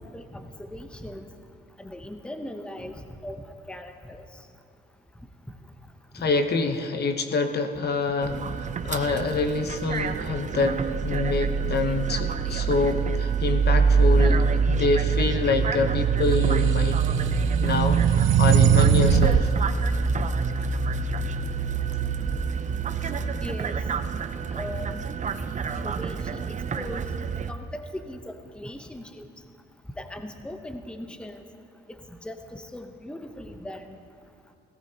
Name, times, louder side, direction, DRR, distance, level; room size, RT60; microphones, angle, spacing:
voice 1, 0.1-1.3 1.8-4.2 9.1-9.2 23.4-23.8 24.5-25.1 25.7-26.4 26.7-27.1 27.5-29.3 30.0-31.4 31.9-34.0, left 1 dB, 5° left, 6 dB, 0.9 m, -39 dB
voice 2, 6.1-17.1 17.6-19.5, left 4 dB, 55° left, 7 dB, 1.0 m, -26 dB
sound 1, 8.2-27.5, right 5 dB, 40° right, 0.6 m, -26 dB
sound 2, 16.5-19.5, right 8 dB, 80° right, 0.5 m, -20 dB
17.5 x 17.0 x 2.9 m, 2.3 s
cardioid pair, 90°, 20 cm